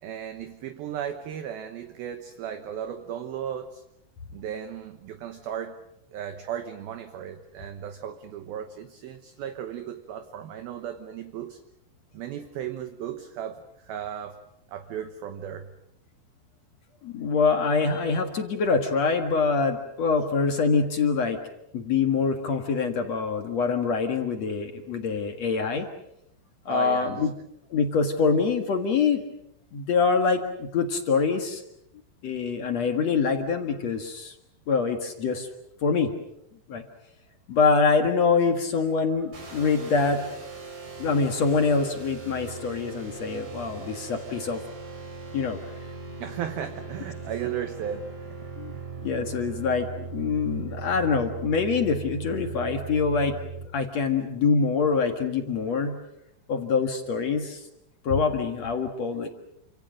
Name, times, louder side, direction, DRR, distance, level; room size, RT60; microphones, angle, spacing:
voice 1, 0.0-3.8 4.3-5.8 6.1-11.6 12.1-14.4 14.7-15.7 26.7-27.3 46.2-48.4 48.7-48.9, right 9 dB, 70° right, 8 dB, 2.4 m, -35 dB
voice 2, 17.0-21.4 21.7-25.9 26.7-27.3 27.7-29.2 29.7-31.6 32.2-34.3 34.7-35.5 35.8-36.1 36.7-36.8 37.5-40.2 41.0-44.6 45.3-45.6 48.6-48.7 49.0-53.4 53.7-56.0 56.5-57.6 58.0-59.3, left 5 dB, 60° left, 5 dB, 1.8 m, -25 dB
sound 1, 39.3-53.7, right 4 dB, 45° right, 7.5 m, -39 dB
29.0 x 26.0 x 6.5 m, 0.79 s
omnidirectional pair, 5.7 m